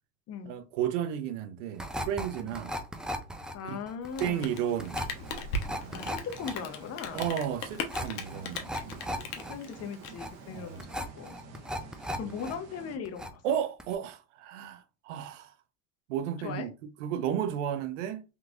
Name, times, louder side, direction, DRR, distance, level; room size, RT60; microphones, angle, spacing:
voice 1, 0.4-2.8 3.6-3.8 4.2-5.1 5.7-6.1 7.1-9.3 10.5-11.1 12.2-12.3 13.4-15.5 16.1-16.7 17.0-18.2, right 9 dB, 85° right, 0.6 m, -33 dB
sound 1, 1.8-12.5 12.8-13.5 13.8-13.9, equal, ahead, 0.4 m, -37 dB
voice 2, 3.5-4.5 5.9-7.2 9.3-11.4 11.6-11.8 12.2-13.4 16.4-16.7, left 6 dB, 45° left, 0.7 m, -39 dB
Rain, 4.0-10.8, left 3 dB, 70° left, 0.9 m, -38 dB
sound 2, 4.3-13.0, right 4 dB, 45° right, 1.1 m, -49 dB
3.5 x 3.0 x 2.4 m
supercardioid pair, 95°, 36 cm